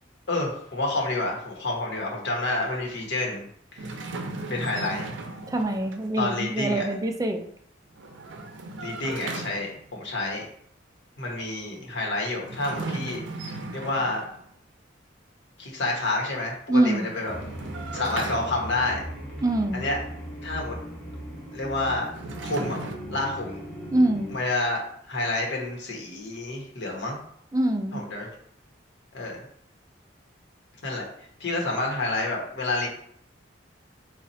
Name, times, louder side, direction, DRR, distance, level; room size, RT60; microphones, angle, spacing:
voice 1, 0.3-3.5 3.7-4.2 4.5-5.1 6.2-6.9 8.8-10.5 11.2-14.2 15.6-17.3 17.9-19.1 19.7-20.0 20.4-20.8 21.5-22.1 22.4-22.8 23.1-23.6 24.3-27.2 27.9-28.3 29.1-29.4 30.8-32.9, left 2 dB, 65° left, -1 dB, 1.2 m, -29 dB
sound 1, 3.8-6.1 7.9-9.9 12.4-14.4 16.8-19.0 21.8-23.0, right 3 dB, 75° right, 0.5 m, -37 dB
voice 2, 5.5-7.4 16.7-17.1 19.4-19.9 23.9-24.4 27.5-28.0, right 1 dB, 20° right, 4 dB, 0.4 m, -24 dB
sound 2, 17.3-24.4, equal, 5° left, 1.2 m, -38 dB
4.2 x 2.4 x 4.1 m, 0.64 s
head